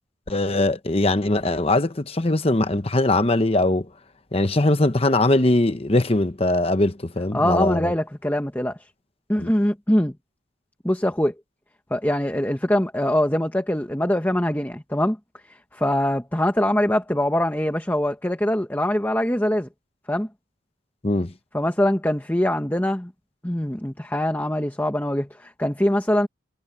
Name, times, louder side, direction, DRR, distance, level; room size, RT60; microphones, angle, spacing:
voice 1, 0.3-3.9 4.3-7.9 9.4-9.5 21.0-21.3, left 2 dB, 30° left, 1.0 m, -21 dB
voice 2, 7.3-8.8 9.3-10.1 10.8-11.3 11.9-15.2 15.5-19.7 20.1-20.3 21.5-23.1 23.4-26.3, left 1 dB, 10° left, 1.2 m, -23 dB
head